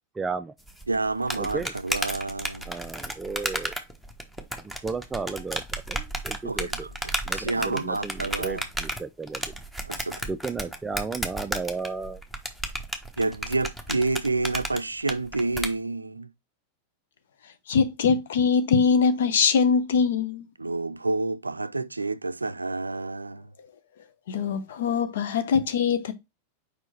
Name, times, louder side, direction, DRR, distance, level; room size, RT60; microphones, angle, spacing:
voice 1, 0.2-0.5 1.4-1.7 2.7-3.7 4.8-5.6 5.9-6.9 7.3-9.5 10.3-12.2, right 4 dB, 15° right, 0.4 m, -33 dB
sound 1, 0.7-15.7, equal, 5° left, 1.1 m, -33 dB
voice 2, 0.9-2.7 6.4-8.6 9.8-10.3 13.2-16.3 20.6-23.5, right 3 dB, 80° right, 0.4 m, -29 dB
voice 3, 17.7-20.5 24.3-26.1, left 5 dB, 60° left, 1.0 m, -22 dB
5.0 x 4.6 x 4.4 m
figure-of-eight pair, 90°, 0 cm